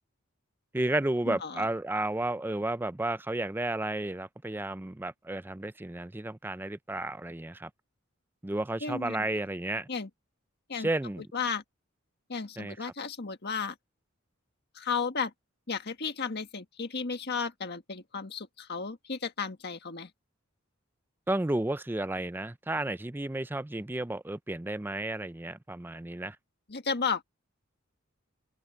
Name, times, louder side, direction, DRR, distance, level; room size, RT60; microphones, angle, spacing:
voice 1, 0.7-7.7 8.4-9.9 10.7-11.2 12.6-12.9 21.3-26.4, right 2 dB, 10° right, 0.5 m, -32 dB
voice 2, 1.3-1.7 8.8-9.4 9.9-10.1 10.7-10.9 11.3-11.6 12.3-13.8 14.7-15.3 15.7-20.1 26.7-27.2, left 5 dB, 55° left, 1.6 m, -34 dB
open air
head